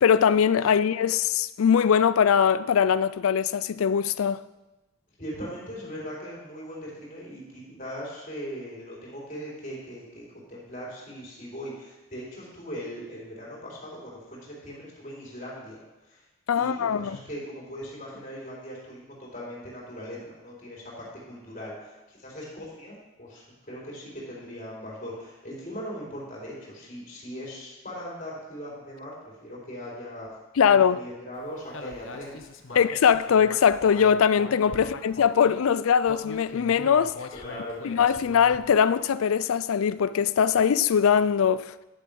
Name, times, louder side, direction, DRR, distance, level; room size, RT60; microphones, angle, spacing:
voice 1, 0.0-4.4 16.5-17.2 30.6-31.0 32.8-37.2 37.8-41.7, left 7 dB, 85° left, 0.4 m, -21 dB
voice 2, 5.2-15.8 16.1-16.2 16.5-30.3 30.6-32.4 32.7-32.8 34.8-34.9 37.3-37.8, equal, 40° left, 4.0 m, -39 dB
Human voice, 31.7-35.6 36.0-38.8, left 3 dB, 65° left, 0.8 m, -41 dB
10.5 x 7.2 x 5.3 m
head